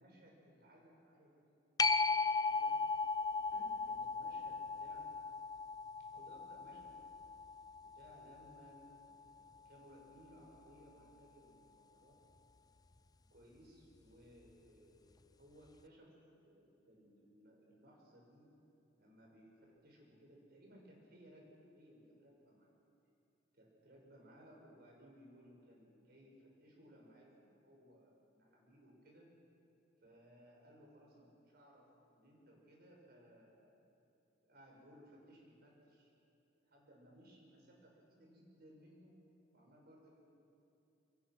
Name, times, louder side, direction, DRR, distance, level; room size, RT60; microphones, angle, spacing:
voice 1, 0.0-1.6 1.8-2.8 3.3-5.2 6.1-7.1 7.8-12.2 13.3-16.1 16.4-18.5 19.0-22.7 23.5-29.3 30.0-33.8 34.4-36.1 36.6-39.2 39.5-40.3, equal, 55° right, -1 dB, 6.0 m, -62 dB
sound 1, 1.8-9.0 14.5-14.6, left 4 dB, 20° left, 0.5 m, -37 dB
27.5 x 25.0 x 6.1 m, 2.8 s
head